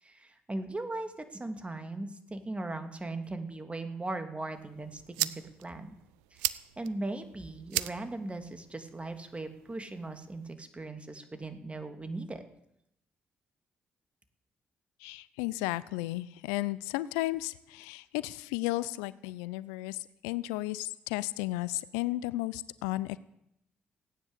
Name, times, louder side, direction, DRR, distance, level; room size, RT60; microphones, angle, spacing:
voice 1, 0.0-5.9 6.3-12.4, right 2 dB, 25° right, 8 dB, 2.8 m, -39 dB
sound 1, 4.5-10.5, right 18 dB, 90° right, 0.5 m, -39 dB
voice 2, 15.0-20.0 20.2-23.2, left 18 dB, 85° left, 18 dB, 0.5 m, -34 dB
17.0 x 9.7 x 8.3 m, 0.78 s
hypercardioid pair, 50°, 5 cm